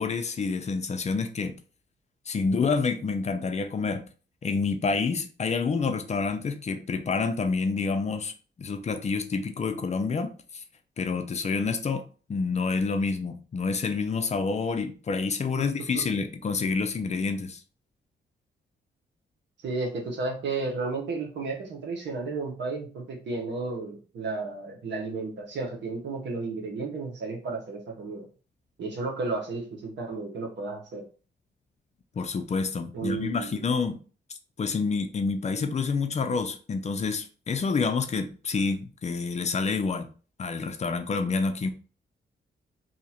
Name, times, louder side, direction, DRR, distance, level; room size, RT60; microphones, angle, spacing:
voice 1, 0.0-1.5 2.3-4.0 4.4-8.3 8.6-10.6 11.0-17.6 32.2-34.0 34.6-40.1 40.4-41.7, left 4 dB, 40° left, 0.5 m, -28 dB
voice 2, 19.6-28.3 28.8-31.0 32.9-33.7, right 3 dB, 80° right, 1.1 m, -33 dB
2.8 x 2.4 x 4.2 m
cardioid pair, 105°, 18 cm